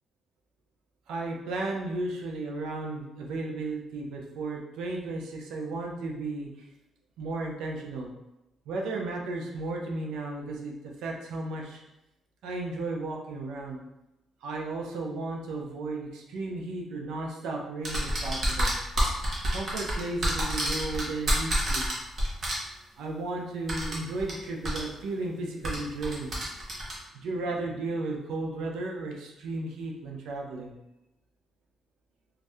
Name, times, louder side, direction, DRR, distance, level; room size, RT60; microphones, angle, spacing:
voice 1, 1.1-6.5 7.2-8.1 8.7-11.8 12.4-13.8 14.4-18.7 19.5-21.9 23.0-26.3 27.1-30.7, right 2 dB, 85° right, 0 dB, 0.5 m, -34 dB
sound 1, 17.8-22.5 23.7-24.3 24.6-24.8 25.6-26.9, equal, 45° right, 1.0 m, -28 dB
2.6 x 2.4 x 3.3 m, 0.93 s
cardioid pair, 110°, 0 cm